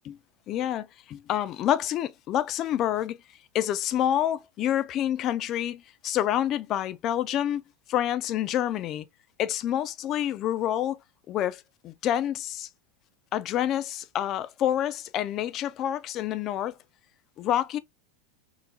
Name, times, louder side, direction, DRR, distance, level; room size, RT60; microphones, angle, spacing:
voice 1, 0.5-3.2 3.5-7.6 7.9-9.1 9.4-11.0 11.3-12.7 13.3-16.8 17.4-17.8, left 11 dB, 35° left, 0.4 m, -28 dB
3.8 x 3.0 x 2.3 m
supercardioid pair, 150°, 0 cm